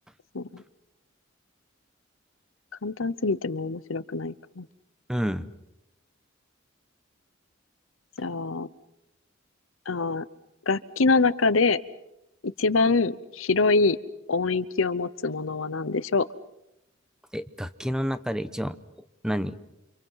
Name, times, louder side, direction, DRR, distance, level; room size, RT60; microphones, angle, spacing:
voice 1, 2.8-4.7 8.2-8.7 9.9-10.2 10.7-11.8 12.4-14.0 14.3-16.3, left 3 dB, 90° left, 15 dB, 0.9 m, -24 dB
voice 2, 5.1-5.5 17.3-18.8 19.2-19.6, equal, 5° right, 12 dB, 0.9 m, -29 dB
30.0 x 26.0 x 5.8 m, 0.88 s
head